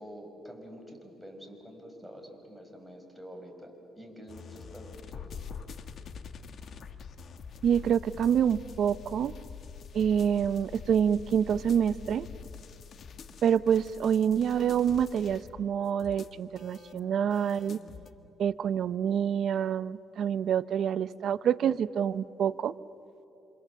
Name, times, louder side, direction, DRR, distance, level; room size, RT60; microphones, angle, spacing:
voice 1, 0.0-5.5, equal, ahead, 2 dB, 5.8 m, -47 dB
sound 1, 4.3-18.1, left 6 dB, 60° left, 1.4 m, -45 dB
voice 2, 7.6-9.3 9.9-12.3 13.4-17.8 18.4-22.7, right 8 dB, 65° right, 16 dB, 0.7 m, -27 dB
27.5 x 27.5 x 7.5 m, 2.9 s
cardioid pair, 90°, 0 cm